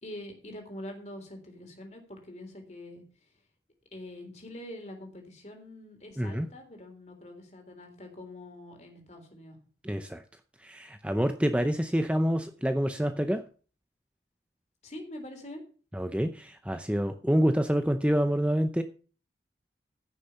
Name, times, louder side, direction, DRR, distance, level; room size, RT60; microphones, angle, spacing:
voice 1, 0.0-3.3 3.9-9.6 14.8-15.6, left 1 dB, 40° left, 4 dB, 3.6 m, -44 dB
voice 2, 6.2-6.5 9.8-10.2 10.6-13.4 15.9-18.8, equal, 5° right, 7 dB, 0.6 m, -27 dB
15.5 x 6.7 x 5.7 m, 0.39 s
head